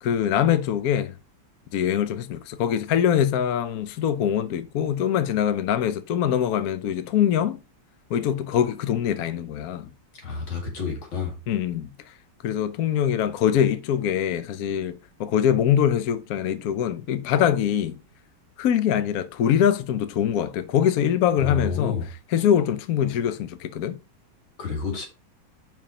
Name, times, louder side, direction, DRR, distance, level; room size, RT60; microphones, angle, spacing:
voice 1, 0.0-1.1 1.7-7.6 8.1-9.9 11.5-11.9 12.4-14.9 15.2-18.0 18.6-22.0 22.3-24.0, left 9 dB, 65° left, 0.9 m, -23 dB
voice 2, 10.2-11.3 21.4-22.1 24.6-25.1, left 5 dB, 85° left, 2.9 m, -29 dB
5.6 x 4.8 x 5.0 m
omnidirectional pair, 2.1 m